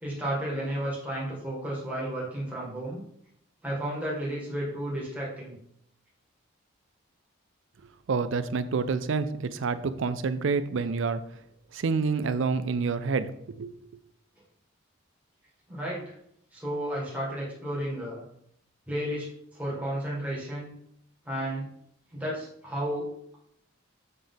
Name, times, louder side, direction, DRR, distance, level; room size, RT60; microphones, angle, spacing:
voice 1, 0.0-3.0 3.6-5.6 15.7-16.1 16.5-18.2 18.9-19.3 19.5-20.7 21.2-21.7 22.1-23.1, right 1 dB, 5° right, -6 dB, 1.8 m, -32 dB
voice 2, 8.1-11.2 11.7-13.3 13.6-13.7, right 4 dB, 65° right, 13 dB, 0.4 m, -28 dB
7.5 x 3.4 x 3.8 m, 0.72 s
head